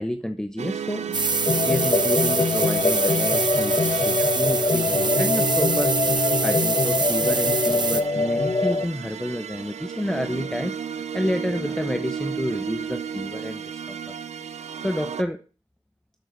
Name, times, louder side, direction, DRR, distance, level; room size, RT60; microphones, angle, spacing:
voice 1, 0.0-14.1 14.8-15.4, left 1 dB, 5° left, 9 dB, 0.9 m, -30 dB
sound 1, 0.6-15.2, right 7 dB, 85° right, 0.8 m, -33 dB
sound 2, 1.1-8.0, right 4 dB, 40° right, 1.1 m, -25 dB
sound 3, 1.5-8.8, left 3 dB, 40° left, 1.4 m, -23 dB
12.0 x 7.6 x 6.3 m, 0.35 s
wide cardioid pair, 80°, 11 cm